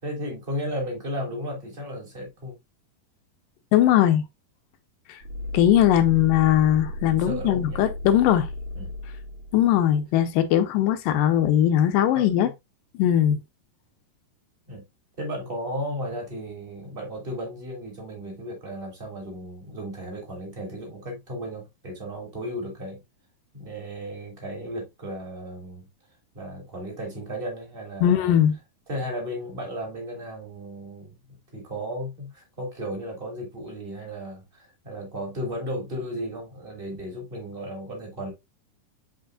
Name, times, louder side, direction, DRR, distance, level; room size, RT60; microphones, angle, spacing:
voice 1, 0.0-2.5 7.1-7.8 8.7-8.9 12.1-12.2 14.7-14.8 15.2-23.0 23.5-25.9 26.3-28.3 28.9-31.1 31.5-38.3, equal, 15° right, 2.6 m, -34 dB
voice 2, 3.7-4.2 5.5-8.5 9.5-12.5 12.9-13.4 28.0-28.5, left 11 dB, 85° left, 2.6 m, -20 dB
sound 1, 5.2-10.1, left 1 dB, 45° right, 2.3 m, -35 dB
7.8 x 5.2 x 2.5 m
omnidirectional pair, 3.9 m